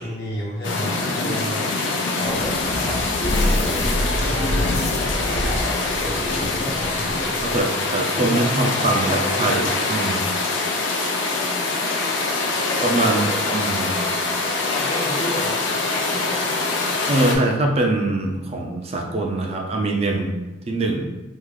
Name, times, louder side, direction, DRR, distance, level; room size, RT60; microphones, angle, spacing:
voice 1, 0.0-1.6 2.2-2.4 2.7-3.0 3.3-7.5 8.2-8.4 8.8-10.2 12.5-14.0 14.7-15.6 16.1-16.3 16.9-17.1, equal, 60° left, -4 dB, 0.9 m, -32 dB
sound 1, 0.6-17.3, left 3 dB, 90° left, 0.6 m, -24 dB
sound 2, 2.2-7.6, left 1 dB, 35° left, 0.4 m, -26 dB
voice 2, 7.4-10.2 12.8-13.9 17.1-20.3 20.7-21.1, right 2 dB, 35° right, 1 dB, 0.4 m, -23 dB
3.6 x 2.4 x 3.0 m, 1.1 s
head